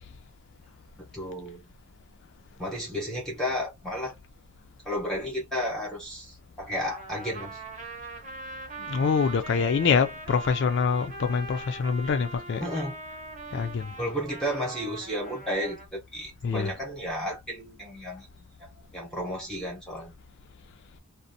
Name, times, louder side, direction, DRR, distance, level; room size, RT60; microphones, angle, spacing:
voice 1, 1.1-1.7 2.6-4.1 4.9-7.6 12.6-13.0 14.0-18.7 18.9-20.1, equal, 5° left, 0.7 m, -33 dB
Trumpet, 6.9-15.9, right 2 dB, 35° right, 0.8 m, -41 dB
voice 2, 8.9-12.7 13.5-13.9 16.4-16.8, left 5 dB, 50° left, 0.3 m, -25 dB
2.5 x 2.0 x 2.6 m
head